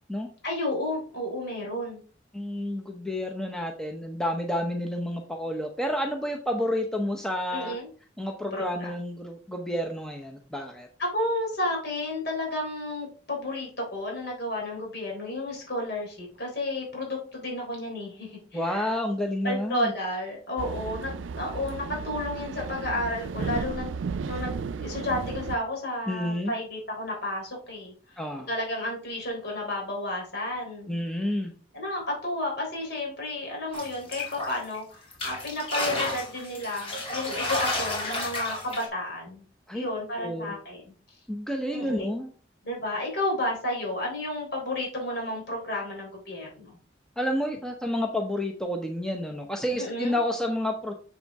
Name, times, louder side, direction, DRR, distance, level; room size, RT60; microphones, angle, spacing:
voice 1, 0.4-2.0 7.5-7.9 8.5-8.9 11.0-18.9 19.4-21.1 21.4-23.9 24.3-27.9 28.5-31.0 31.7-39.4 39.7-40.9 41.7-42.1 42.6-46.8 49.8-50.2, left 1 dB, 60° left, -1 dB, 3.6 m, -32 dB
voice 2, 2.3-7.7 8.2-10.9 18.5-19.9 26.1-26.5 28.2-28.5 30.9-31.5 39.7-39.9 40.2-40.5 41.3-42.3 47.2-50.9, left 1 dB, 5° left, 2 dB, 0.7 m, -30 dB
sound 1, 20.6-25.6, right 5 dB, 85° right, 0.4 m, -34 dB
sound 2, 33.7-34.8 35.1-38.9, left 2 dB, 30° left, 2.8 m, -31 dB
7.2 x 6.8 x 3.5 m, 0.41 s
head